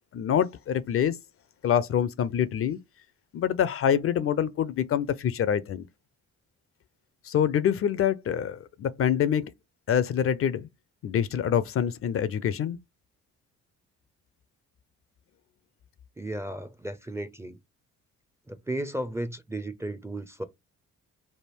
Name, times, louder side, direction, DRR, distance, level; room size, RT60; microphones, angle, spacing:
voice 1, 0.1-1.1 1.6-2.8 3.3-5.9 7.2-9.5 9.9-10.7 11.0-12.8, left 9 dB, 50° left, 0.4 m, -25 dB
voice 2, 16.2-17.6 18.5-20.4, right 1 dB, 10° right, 0.4 m, -34 dB
3.4 x 2.5 x 4.4 m
cardioid pair, 90°, 30 cm